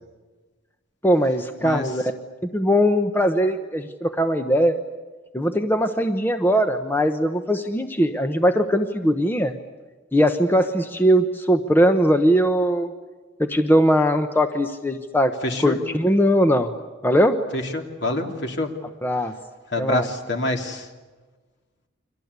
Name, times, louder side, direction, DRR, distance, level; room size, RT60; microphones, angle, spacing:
voice 1, 1.0-2.0 2.5-4.8 5.3-9.6 10.1-12.9 13.4-15.3 15.6-16.7 17.0-17.4 19.0-19.3 19.8-20.1, equal, 10° left, 7 dB, 1.0 m, -20 dB
voice 2, 15.4-15.8 17.5-18.7 19.7-20.9, left 1 dB, 60° left, 3 dB, 3.1 m, -26 dB
30.0 x 24.0 x 8.3 m, 1.3 s
head